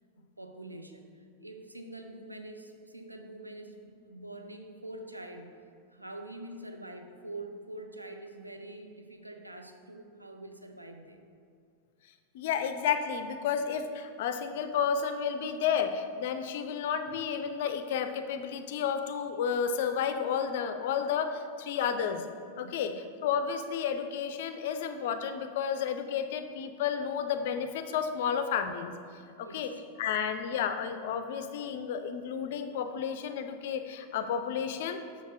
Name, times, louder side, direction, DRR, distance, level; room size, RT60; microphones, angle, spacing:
voice 1, 0.4-1.1 1.4-5.5 5.9-11.2 22.5-22.8 29.4-29.8, right 1 dB, 85° right, 5 dB, 0.5 m, -45 dB
voice 2, 12.3-22.2 22.6-28.9 29.4-29.7 30.0-35.0, left 7 dB, 55° left, 9 dB, 0.4 m, -31 dB
6.3 x 6.2 x 3.5 m, 2.2 s
figure-of-eight pair, 90°, 0 cm